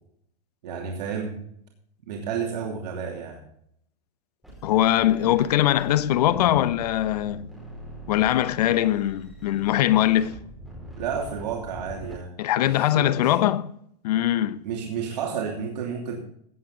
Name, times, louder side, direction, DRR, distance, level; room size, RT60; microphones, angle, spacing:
voice 1, 0.6-1.4 2.1-3.4 11.0-12.3 12.7-13.4 14.6-16.2, right 6 dB, 75° right, 2.9 m, -31 dB
sound 1, 4.4-12.1, right 2 dB, ahead, 5.1 m, -43 dB
voice 2, 4.6-7.5 8.1-10.3 12.4-13.7 14.0-14.6, left 13 dB, 70° left, 0.9 m, -22 dB
17.0 x 8.0 x 3.9 m
supercardioid pair, 165°, 21 cm